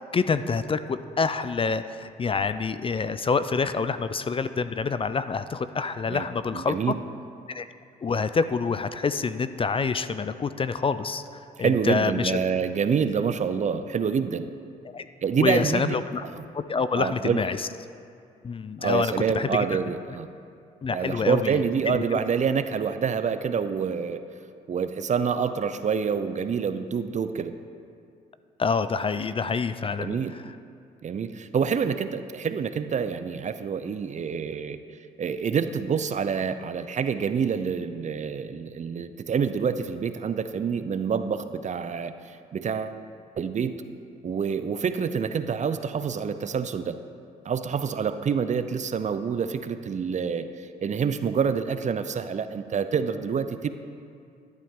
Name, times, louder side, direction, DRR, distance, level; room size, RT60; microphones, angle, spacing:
voice 1, 0.0-6.9 7.5-7.7 8.0-11.2 11.6-12.4 14.9-15.1 15.4-16.2 16.5-17.6 18.4-19.6 20.8-21.6 21.9-22.2 28.6-30.2, left 5 dB, 30° left, 12 dB, 0.4 m, -27 dB
voice 2, 6.5-7.0 11.6-14.5 15.2-16.4 17.0-17.4 18.8-20.3 20.9-24.2 24.7-27.5 30.0-30.3 31.0-34.8 35.2-43.0 43.4-43.8 44.2-47.0 47.4-53.7, right 6 dB, 40° right, 11 dB, 0.6 m, -27 dB
11.5 x 10.5 x 3.7 m, 2.4 s
supercardioid pair, 60°, 18 cm